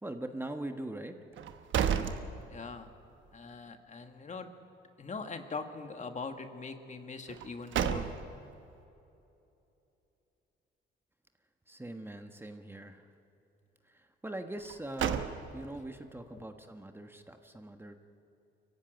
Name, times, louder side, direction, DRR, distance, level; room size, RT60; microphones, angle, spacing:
voice 1, 0.0-1.2 11.7-13.1 13.9-18.0, right 1 dB, 10° right, 6 dB, 1.3 m, -42 dB
sound 1, 1.3-3.0 3.4-3.5 7.3-8.5 14.6-15.9, right 8 dB, 75° right, 1.2 m, -33 dB
voice 2, 2.5-2.9 3.3-4.5 5.0-8.2 16.3-16.4, left 4 dB, 35° left, 7 dB, 1.6 m, -42 dB
24.0 x 15.5 x 9.0 m, 2.8 s
cardioid pair, 90°, 20 cm